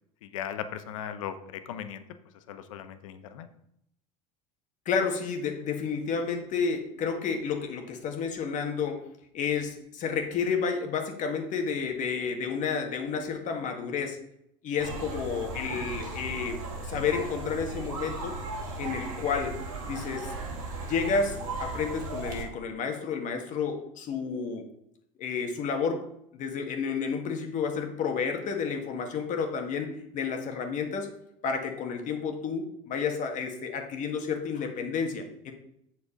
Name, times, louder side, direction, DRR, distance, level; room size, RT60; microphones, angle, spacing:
voice 1, 0.2-2.0 2.5-3.5, left 9 dB, 80° left, 11 dB, 0.8 m, -38 dB
voice 2, 4.9-9.1 9.3-14.2 14.6-18.4 18.8-19.6 19.9-20.3 20.9-24.6 25.2-26.1 26.4-31.1 31.4-35.5, left 5 dB, 50° left, 5 dB, 1.7 m, -31 dB
sound 1, 14.8-22.4, right 2 dB, 85° right, 2.4 m, -36 dB
7.5 x 6.4 x 5.1 m, 0.76 s
hypercardioid pair, 90°, 17 cm